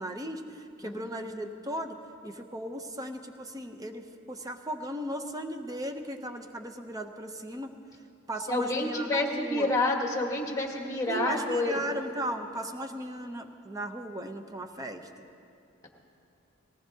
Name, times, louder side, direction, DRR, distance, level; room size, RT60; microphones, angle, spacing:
voice 1, 0.0-2.0 2.2-7.7 8.3-9.7 11.1-15.3, right 1 dB, 15° right, 7 dB, 0.6 m, -37 dB
voice 2, 8.5-11.8, left 2 dB, 15° left, 1 dB, 1.3 m, -28 dB
19.0 x 18.0 x 2.8 m, 2.6 s
head